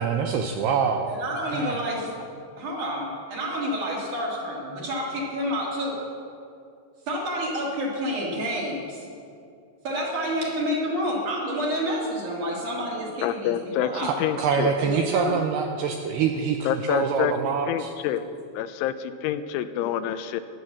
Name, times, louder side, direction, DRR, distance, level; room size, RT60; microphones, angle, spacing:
voice 1, 0.0-1.1 1.5-1.7 14.0-17.9, right 6 dB, 85° right, 4 dB, 2.4 m, -25 dB
voice 2, 1.1-2.0 2.6-6.0 7.1-9.0 9.8-14.1 14.8-15.4, equal, 45° right, -3 dB, 3.7 m, -29 dB
voice 3, 13.2-14.7 16.7-17.3 17.7-18.2 18.6-20.4, left 11 dB, 90° left, 11 dB, 3.1 m, -27 dB
16.0 x 11.0 x 7.0 m, 2.4 s
omnidirectional pair, 5.5 m